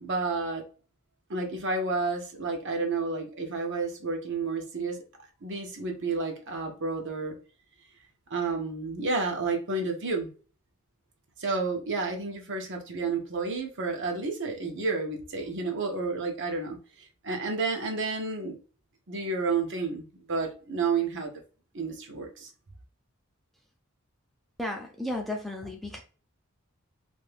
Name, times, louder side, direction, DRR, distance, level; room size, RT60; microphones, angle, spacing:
voice 1, 0.0-0.6 1.3-5.0 5.4-7.4 8.3-10.3 11.4-16.8 17.2-18.6 19.1-21.3 21.7-22.5, right 3 dB, 60° right, 0.8 m, -30 dB
voice 2, 24.6-26.0, left 1 dB, ahead, 0.4 m, -34 dB
2.7 x 2.6 x 3.3 m
head